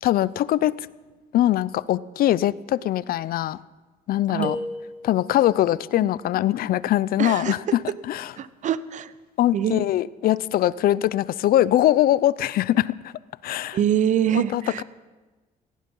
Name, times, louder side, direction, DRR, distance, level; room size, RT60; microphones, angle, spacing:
voice 1, 0.0-0.7 1.3-3.6 4.1-4.6 5.0-7.8 8.1-8.3 9.4-13.8 14.3-14.8, left 13 dB, 60° left, 20 dB, 0.5 m, -22 dB
sound 1, 4.4-5.5, left 1 dB, 5° left, 1.3 m, -34 dB
voice 2, 7.2-7.8 8.4-9.1 9.5-9.9 13.7-14.8, right 9 dB, 45° right, 16 dB, 0.8 m, -24 dB
17.5 x 15.0 x 5.5 m, 1.2 s
cardioid pair, 110°, 17 cm